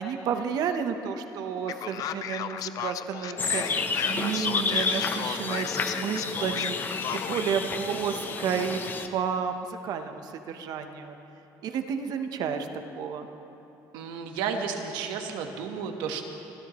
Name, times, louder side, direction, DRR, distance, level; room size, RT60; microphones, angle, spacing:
voice 1, 0.0-8.8 9.1-11.2 11.6-12.7 12.9-13.3, right 7 dB, 60° right, 7 dB, 0.9 m, -31 dB
Male speech man speaking, 1.7-7.5, left 10 dB, 55° left, 0.5 m, -35 dB
sound 1, 3.4-9.1, left 4 dB, 25° left, 0.8 m, -30 dB
voice 2, 13.9-16.3, right 6 dB, 85° right, 4 dB, 1.3 m, -32 dB
28.0 x 13.5 x 3.1 m, 2.9 s
cardioid pair, 135°, 8 cm